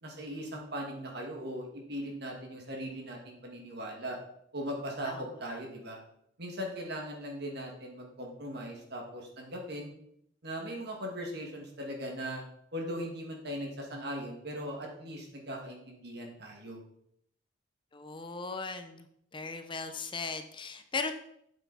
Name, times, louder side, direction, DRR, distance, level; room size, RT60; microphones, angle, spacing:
voice 1, 0.0-4.2 4.5-6.0 6.4-9.9 10.4-12.4 12.7-16.8, equal, 60° right, 0 dB, 2.3 m, -39 dB
voice 2, 17.9-19.1 19.3-21.1, left 4 dB, 25° left, 8 dB, 0.7 m, -37 dB
8.3 x 8.1 x 4.3 m, 0.72 s
head